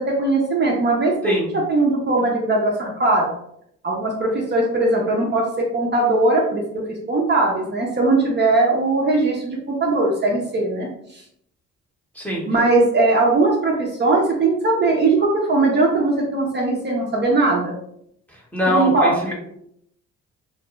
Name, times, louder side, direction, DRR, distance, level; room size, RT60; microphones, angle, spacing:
voice 1, 0.0-3.3 3.8-6.6 6.9-11.2 12.5-17.7 18.7-19.1, right 2 dB, 35° right, -1 dB, 0.5 m, -19 dB
voice 2, 1.2-1.6 12.1-12.4 18.3-19.3, equal, 5° left, -2 dB, 0.8 m, -23 dB
2.3 x 2.2 x 2.9 m, 0.73 s
cardioid pair, 90°, 30 cm